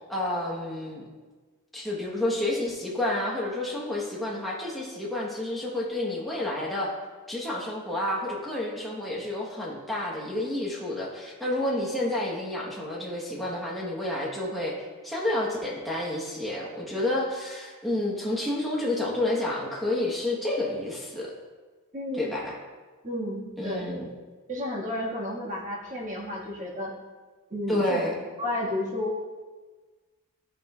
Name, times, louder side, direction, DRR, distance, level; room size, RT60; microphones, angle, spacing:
voice 1, 0.1-1.0 1.7-6.9 7.3-14.8 15.0-21.3 22.2-22.5 23.6-24.1 27.7-28.1, left 1 dB, ahead, -5 dB, 1.0 m, -30 dB
voice 2, 21.9-22.3 23.0-23.9 24.5-26.9 27.5-28.0 28.4-29.2, left 1 dB, 35° right, -4 dB, 1.6 m, -32 dB
12.5 x 5.1 x 2.3 m, 1.3 s
head